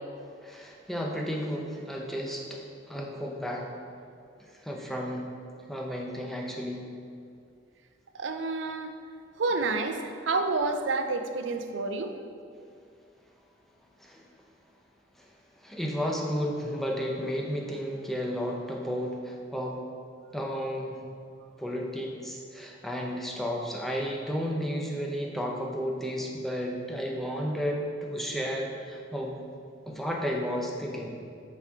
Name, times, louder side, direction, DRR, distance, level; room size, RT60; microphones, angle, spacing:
voice 1, 0.4-3.7 4.6-5.3 5.7-6.8 14.0-14.2 15.6-19.8 20.3-21.0 21.6-29.3 29.9-31.1, equal, ahead, -1 dB, 0.7 m, -32 dB
voice 2, 8.1-8.9 9.4-12.1, right 3 dB, 80° right, 6 dB, 0.5 m, -29 dB
8.4 x 4.4 x 3.6 m, 2.4 s
head